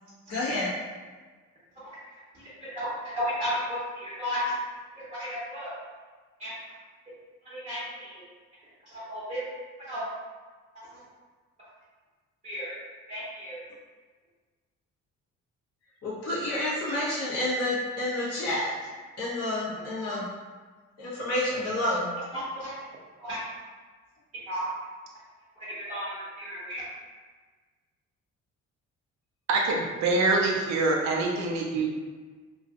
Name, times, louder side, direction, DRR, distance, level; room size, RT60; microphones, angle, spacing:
voice 1, 0.3-0.7 16.0-18.7 19.2-20.2 21.0-22.1, left 1 dB, 55° left, -9 dB, 1.3 m, -29 dB
voice 2, 2.3-2.9 3.1-4.6 4.9-5.7 6.4-6.7 7.4-8.2 8.8-9.4 9.8-10.1 10.7-11.0 11.6-11.7 12.4-12.8 13.1-13.6 20.1-20.2 22.3-22.8 23.2-23.4 24.5-24.7 25.5-26.8, equal, 25° right, -11 dB, 1.3 m, -34 dB
voice 3, 29.5-31.9, right 3 dB, 65° right, -1 dB, 0.6 m, -25 dB
3.0 x 2.5 x 2.4 m, 1.4 s
cardioid pair, 90°, 30 cm